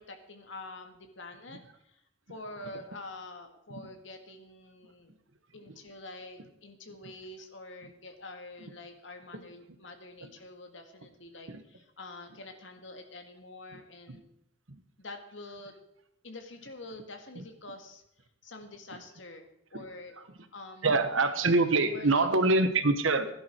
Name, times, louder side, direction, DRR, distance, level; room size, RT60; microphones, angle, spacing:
voice 1, 0.0-2.0 2.3-5.1 5.5-14.3 15.0-15.8 16.2-18.0 18.4-20.2 20.5-20.9 21.8-22.6, left 2 dB, 70° left, 5 dB, 2.0 m, -46 dB
voice 2, 20.8-23.3, right 3 dB, 85° right, 10 dB, 1.4 m, -25 dB
16.5 x 11.0 x 4.6 m, 0.78 s
head